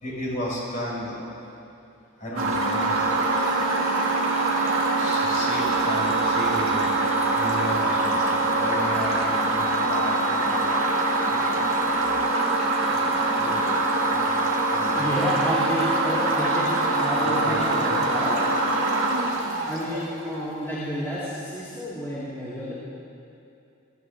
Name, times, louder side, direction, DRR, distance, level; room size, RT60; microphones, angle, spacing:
voice 1, 0.0-1.3 2.2-3.2 4.6-7.0 7.3-12.2 12.9-14.4 14.7-15.5 15.8-16.2 17.2-17.9, equal, 40° left, -5 dB, 4.6 m, -34 dB
sound 1, 2.4-20.3, right 2 dB, 80° right, 2.1 m, -23 dB
voice 2, 14.9-18.5 19.6-22.7, equal, 10° left, -11 dB, 3.0 m, -30 dB
23.0 x 15.0 x 3.7 m, 2.7 s
head